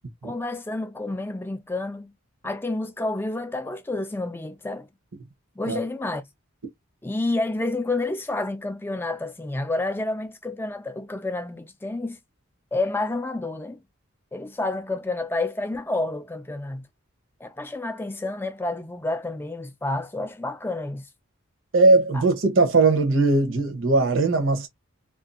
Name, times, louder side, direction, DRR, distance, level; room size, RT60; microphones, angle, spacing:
voice 1, 0.2-2.1 2.4-4.9 5.6-6.2 7.0-12.2 12.7-13.8 14.3-16.9 17.4-21.1, left 2 dB, 10° left, 0.3 m, -29 dB
voice 2, 21.7-24.7, right 3 dB, 70° right, 0.8 m, -19 dB
2.6 x 2.3 x 2.5 m
head